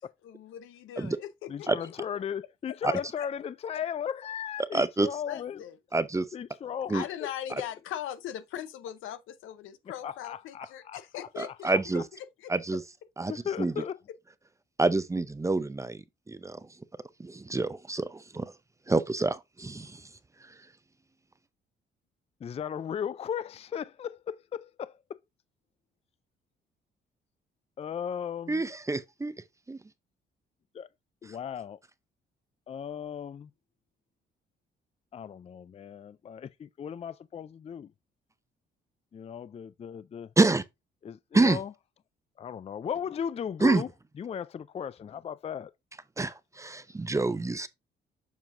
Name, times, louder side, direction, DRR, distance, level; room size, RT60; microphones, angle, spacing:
voice 1, 0.2-1.9 2.9-3.3 5.3-5.7 6.9-11.7 12.4-12.5, left 11 dB, 85° left, 0.8 m, -40 dB
voice 2, 1.5-5.6 6.3-7.3 10.0-11.0 11.5-12.0 13.3-14.0 22.4-25.2 27.8-28.6 30.7-30.9 31.2-31.8 32.7-33.5 35.1-37.9 39.1-40.3 41.0-41.7 42.4-43.9 44.2-45.7, left 8 dB, 30° left, 0.4 m, -36 dB
voice 3, 4.7-5.1 5.9-6.3 6.9-7.0 11.4-12.0 12.5-12.8 13.2-13.3 13.6-13.7 14.8-16.6 17.2-18.5 18.9-20.0 28.5-29.3 29.7-29.8 40.4-40.6 41.3-41.6 43.6-43.8 46.2-47.7, right 3 dB, 15° right, 0.5 m, -27 dB
7.2 x 5.7 x 2.6 m
cardioid pair, 90°, 20 cm